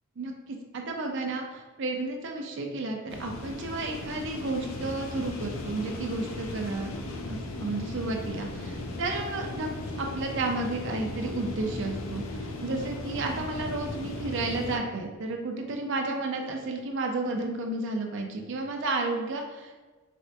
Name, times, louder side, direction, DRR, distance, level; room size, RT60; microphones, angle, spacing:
voice 1, 0.2-6.9 7.3-9.7 10.0-19.8, right 2 dB, 60° right, 2 dB, 0.5 m, -32 dB
sound 1, 3.1-14.8, left 2 dB, 80° left, 0.4 m, -37 dB
4.2 x 2.1 x 2.6 m, 1.3 s
head